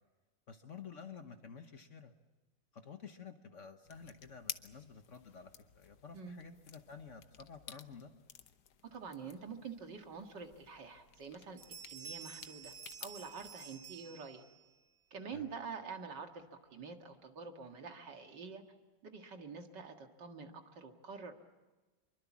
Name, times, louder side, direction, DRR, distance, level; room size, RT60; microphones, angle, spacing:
voice 1, 0.5-2.1 2.7-8.1 15.3-15.5, left 6 dB, 45° left, 8 dB, 1.3 m, -51 dB
sound 1, 3.9-13.5, left 9 dB, 65° left, 1.5 m, -53 dB
voice 2, 8.9-11.6 11.9-12.7 13.0-14.4 15.1-18.6 19.0-21.3, right 5 dB, 70° right, 5 dB, 2.5 m, -47 dB
Bell, 10.5-10.6 11.1-11.3 11.6-14.7, right 7 dB, 85° right, 3.4 m, -51 dB
25.5 x 23.5 x 7.3 m, 1.2 s
omnidirectional pair, 2.0 m